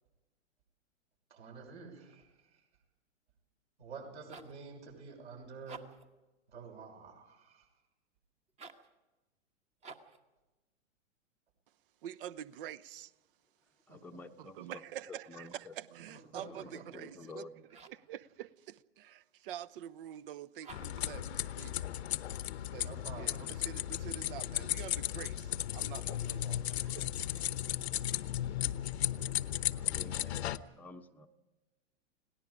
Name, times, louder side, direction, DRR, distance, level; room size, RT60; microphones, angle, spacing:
voice 1, 1.3-2.3 3.8-5.8 6.5-7.6 13.9-14.0 16.1-17.2 22.8-23.4, right 5 dB, 60° right, 6.4 m, -49 dB
sound 1, 4.3-4.6 5.5-6.1 8.5-8.9 9.8-10.2 15.3-15.8 17.7-18.1 20.6-21.1, right 4 dB, 20° right, 1.3 m, -52 dB
voice 2, 12.0-13.1 14.4-17.5 17.7-21.7 22.7-27.5, right 11 dB, 45° right, 0.9 m, -47 dB
voice 3, 13.9-14.6 15.1-15.7 16.6-16.7 16.9-17.7 29.7-31.3, left 3 dB, 5° left, 1.0 m, -50 dB
sound 2, 20.7-30.6, left 12 dB, 60° left, 1.0 m, -35 dB
30.0 x 18.5 x 5.0 m
figure-of-eight pair, 110°, 37 cm